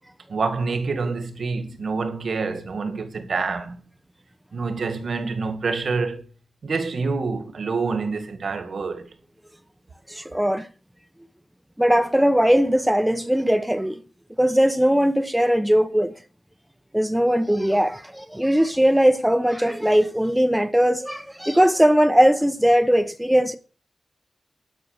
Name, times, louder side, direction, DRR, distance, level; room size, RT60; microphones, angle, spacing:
voice 1, 0.3-3.8 4.5-6.2 6.6-9.1, right 4 dB, 70° right, 1.9 m, -27 dB
voice 2, 10.1-10.7 11.8-14.0 14.4-16.1 16.9-23.6, equal, 5° right, 0.7 m, -19 dB
11.0 x 6.4 x 6.5 m
wide cardioid pair, 120°, 0 cm